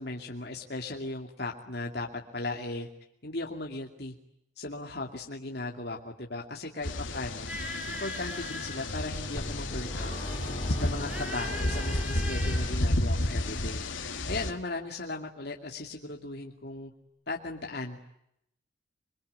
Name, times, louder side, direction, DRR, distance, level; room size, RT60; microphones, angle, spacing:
voice 1, 0.0-2.9 3.2-4.1 4.6-7.5 7.9-10.2 10.7-13.9 14.3-16.9 17.3-18.1, left 2 dB, 55° left, 1 dB, 2.6 m, -37 dB
sound 1, 6.8-14.5, left 1 dB, 80° left, 2.7 m, -32 dB
sound 2, 7.5-9.3 9.9-12.6, equal, 5° right, 6.5 m, -40 dB
sound 3, 9.4-13.4, equal, 20° left, 6.4 m, -39 dB
27.0 x 23.0 x 9.6 m, 0.78 s
head